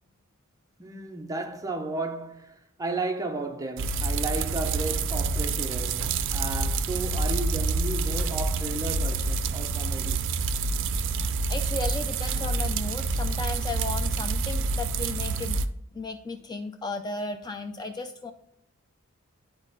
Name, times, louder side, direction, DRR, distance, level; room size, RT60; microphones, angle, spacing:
voice 1, 0.8-10.3, right 2 dB, 15° right, 0.6 m, -34 dB
sound 1, 3.8-15.7, right 3 dB, 60° right, 0.5 m, -27 dB
voice 2, 11.5-15.6 15.9-18.3, left 3 dB, 20° left, 0.3 m, -35 dB
11.5 x 4.4 x 2.7 m
head